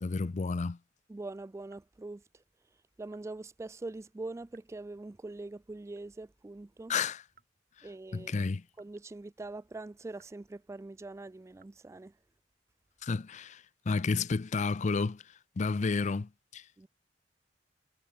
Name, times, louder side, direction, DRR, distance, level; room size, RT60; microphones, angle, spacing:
voice 1, 0.0-0.8 6.9-7.2 7.8-8.6 13.0-15.2 15.6-16.6, left 4 dB, 40° left, 0.5 m, -31 dB
voice 2, 1.1-2.2 3.0-6.9 7.8-8.4 8.8-12.1 16.8-16.9, right 2 dB, 15° right, 0.3 m, -43 dB
sound 1, 1.7-2.0 3.1-3.4 4.5-4.9 5.9-6.3 7.3-7.7 8.7-9.1 9.5-9.6 10.1-10.5 11.5-11.6, right 7 dB, 50° right, 3.2 m, -66 dB
head